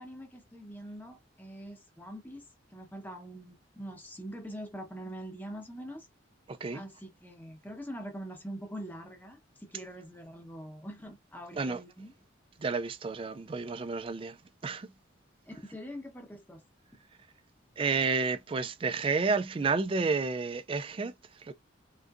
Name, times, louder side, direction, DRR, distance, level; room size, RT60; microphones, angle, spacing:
voice 1, 0.0-2.5 2.7-6.1 6.7-12.1 15.5-16.6, equal, 10° left, 0.8 m, -44 dB
voice 2, 6.5-6.8 11.5-11.8 12.6-14.4 14.6-14.9 17.8-21.5, right 4 dB, 25° right, 0.3 m, -31 dB
3.7 x 2.5 x 2.3 m
head